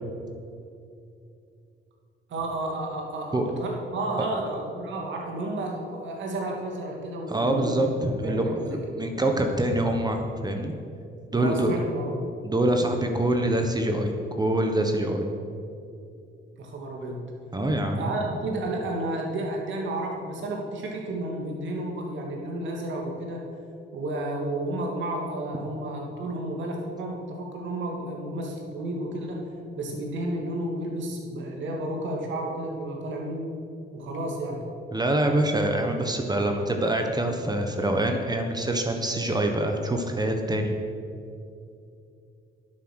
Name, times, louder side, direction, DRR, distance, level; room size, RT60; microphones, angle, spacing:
voice 1, 2.3-7.9 8.2-9.0 11.3-12.1 16.6-17.2 18.0-23.4 23.9-29.4 29.7-33.5 33.9-34.6, right 1 dB, 70° right, 0 dB, 2.6 m, -32 dB
voice 2, 7.3-10.7 11.3-11.8 12.4-15.3 17.5-18.0 34.9-40.7, right 1 dB, 20° right, 4 dB, 1.3 m, -25 dB
10.0 x 8.7 x 6.3 m, 2.5 s
cardioid pair, 90°, 20 cm